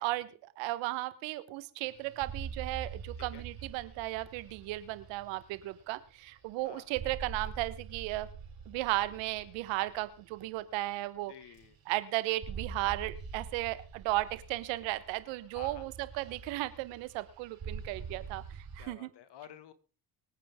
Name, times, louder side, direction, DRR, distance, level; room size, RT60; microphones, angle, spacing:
voice 1, 0.0-8.3 8.7-11.3 11.9-18.4 18.7-19.1, right 18 dB, 85° right, 14 dB, 1.3 m, -35 dB
sound 1, 1.8-6.6 6.9-11.2 11.5-12.0 12.3-18.9, right 6 dB, 50° right, 6.1 m, -45 dB
voice 2, 11.3-11.8 15.5-15.8 18.8-19.7, left 10 dB, 65° left, 12 dB, 1.9 m, -51 dB
23.5 x 9.4 x 3.7 m, 0.37 s
supercardioid pair, 70°, 44 cm